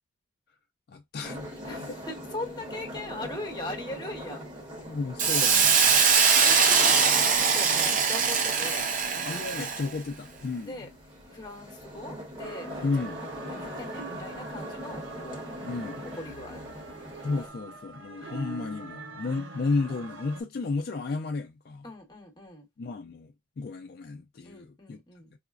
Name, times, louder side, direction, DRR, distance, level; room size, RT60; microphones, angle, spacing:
voice 1, 0.9-2.0 4.9-6.0 9.3-10.7 12.8-13.2 15.6-16.0 17.2-21.8 22.8-25.0, left 3 dB, 55° left, 0.4 m, -33 dB
sound 1, 1.2-17.5, equal, 25° right, 1.1 m, -42 dB
voice 2, 1.6-4.4 6.4-8.9 9.1-9.4 10.6-10.9 11.3-15.4 16.1-16.6 21.8-22.6 24.4-25.3, left 2 dB, 20° left, 1.0 m, -40 dB
Hiss, 5.2-9.9, right 6 dB, 40° right, 0.6 m, -22 dB
sound 2, 12.4-20.4, right 3 dB, 90° right, 0.9 m, -44 dB
4.7 x 2.1 x 2.3 m
head